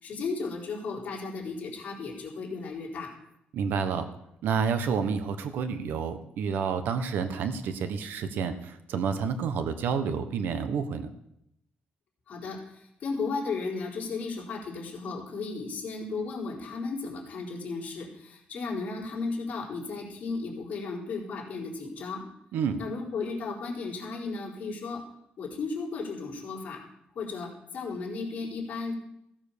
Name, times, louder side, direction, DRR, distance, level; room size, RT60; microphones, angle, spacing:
voice 1, 0.0-3.1 12.3-22.2 22.8-25.0 25.4-26.8 27.1-28.9, left 4 dB, 50° left, -3 dB, 4.0 m, -35 dB
voice 2, 3.5-4.1 4.4-11.1 22.5-22.8, right 6 dB, 85° right, 10 dB, 1.2 m, -29 dB
15.5 x 7.3 x 6.8 m, 0.80 s
cardioid pair, 165°, 3 cm